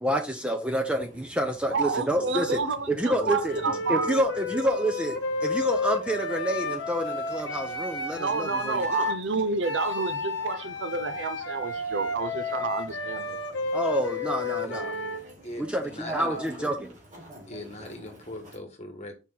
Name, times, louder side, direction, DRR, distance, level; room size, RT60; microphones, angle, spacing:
voice 1, 0.0-2.6 2.9-3.6 3.9-9.1 13.7-15.0 15.6-16.9, equal, 5° right, 0.7 m, -28 dB
sound 1, 0.8-18.6, right 1 dB, 40° right, 2.3 m, -47 dB
voice 2, 1.7-4.1 8.1-13.4, right 4 dB, 70° right, 0.6 m, -29 dB
voice 3, 3.1-3.8 10.4-10.7 14.1-16.8 17.5-19.2, left 1 dB, 35° left, 1.4 m, -42 dB
Wind instrument woodwind instrument, 3.4-9.2 9.6-15.3, left 3 dB, 70° left, 1.0 m, -32 dB
5.5 x 4.7 x 3.8 m
head